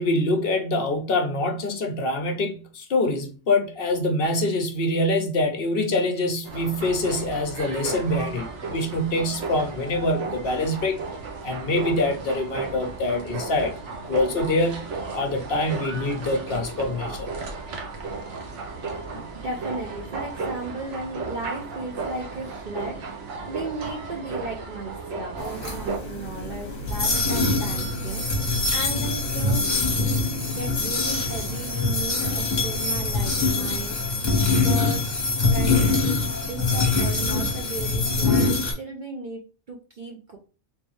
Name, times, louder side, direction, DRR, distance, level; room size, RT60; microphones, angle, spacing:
voice 1, 0.0-11.0 11.4-13.7 14.1-14.8 15.1-17.3 19.1-19.2, left 2 dB, 55° left, 0.8 m, -25 dB
sound 1, 6.4-26.0, right 4 dB, 70° right, 1.2 m, -34 dB
voice 2, 19.3-28.3 28.7-29.7 30.0-34.2 34.5-35.1 35.5-35.9 36.5-40.4, right 2 dB, 50° right, 0.7 m, -36 dB
sound 2, 25.4-38.7, left 3 dB, 40° left, 1.1 m, -24 dB
3.6 x 2.6 x 3.0 m
omnidirectional pair, 1.2 m